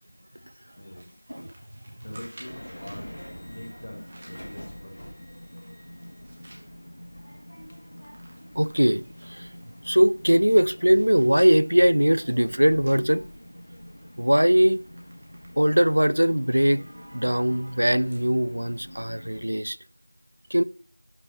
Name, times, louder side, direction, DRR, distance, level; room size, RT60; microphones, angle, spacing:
voice 1, 0.8-1.1 2.0-3.1 3.4-5.2, left 1 dB, 35° left, 1.4 m, -43 dB
sound 1, 1.0-3.0 3.8-4.5 5.0-6.7 7.1-7.2 7.5-9.5 10.1-13.8 14.2-14.4 14.7-18.3 18.7-18.8 19.7-19.8, right 1 dB, 15° right, 0.9 m, -53 dB
sound 2, 2.4-19.4, equal, 70° left, 1.9 m, -44 dB
voice 2, 8.6-9.5 9.8-13.2 14.2-14.8 15.6-16.8 17.1-19.8 20.5-20.6, equal, 75° right, 0.3 m, -21 dB
8.1 x 5.3 x 2.8 m
figure-of-eight pair, 180°, 0 cm